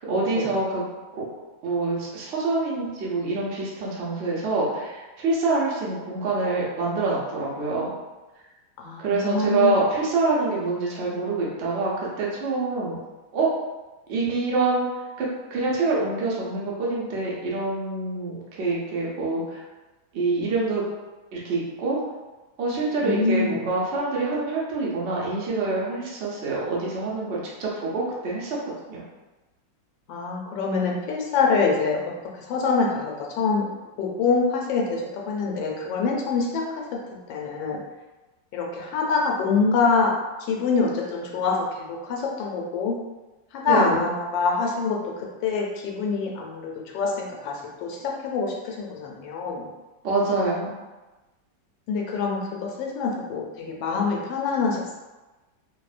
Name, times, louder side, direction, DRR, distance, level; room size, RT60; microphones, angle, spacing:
voice 1, 0.1-0.8 1.1-1.2 1.6-7.9 9.0-13.0 13.3-13.5 14.1-14.9 15.2-19.6 20.1-20.8 21.3-22.0 22.6-29.0 43.6-44.0 50.0-50.7, right 3 dB, 70° right, -5 dB, 0.6 m, -26 dB
voice 2, 8.8-9.8 23.0-23.5 30.1-32.0 32.5-33.6 34.0-36.8 37.3-37.8 38.5-40.1 40.4-42.9 43.5-47.5 47.8-49.7 51.9-54.9, left 4 dB, 85° left, -1 dB, 1.3 m, -25 dB
3.1 x 2.1 x 2.4 m, 1.1 s
omnidirectional pair, 2.0 m